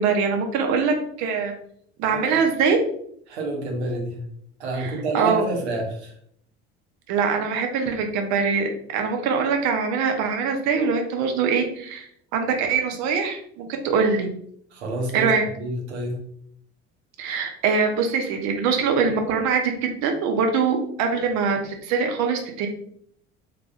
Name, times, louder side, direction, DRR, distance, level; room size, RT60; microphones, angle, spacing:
voice 1, 0.0-1.5 2.0-2.8 4.8-5.4 7.1-12.1 12.3-14.3 15.1-15.4 17.2-22.7, right 5 dB, 50° right, 4 dB, 0.8 m, -23 dB
voice 2, 2.1-2.4 3.3-4.2 4.6-6.1 14.7-16.2, right 2 dB, 70° right, 1 dB, 1.0 m, -28 dB
3.6 x 3.3 x 2.4 m, 0.67 s
figure-of-eight pair, 60°, 35 cm